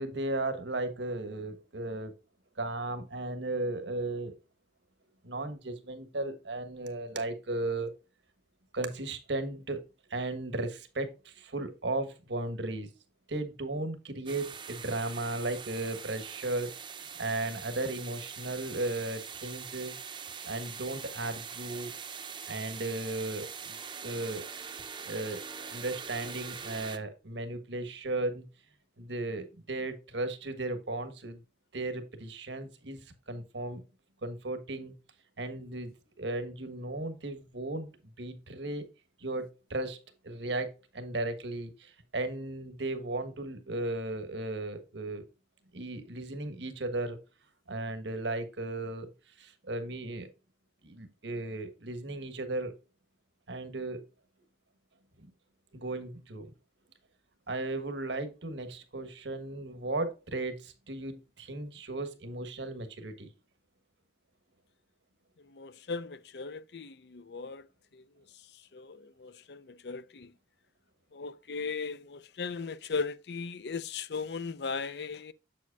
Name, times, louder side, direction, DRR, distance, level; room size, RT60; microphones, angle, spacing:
voice 1, 0.0-2.1 2.6-4.3 5.2-7.9 8.7-12.9 13.3-16.7 17.2-20.0 20.4-21.9 22.5-24.5 25.0-28.4 29.0-31.4 31.7-33.8 34.2-34.9 35.4-37.9 38.2-38.8 39.2-45.2 45.7-47.2 47.7-49.1 49.4-50.3 50.8-52.8 53.5-54.1 55.2-55.3 55.7-56.5 57.5-63.3, right 2 dB, 80° right, 1.4 m, -35 dB
sound 1, 14.3-27.0, right 6 dB, 25° right, 0.6 m, -43 dB
voice 2, 65.5-67.7 67.9-68.0 68.7-70.3 71.1-75.3, left 4 dB, 65° left, 0.5 m, -37 dB
7.7 x 7.6 x 2.4 m
head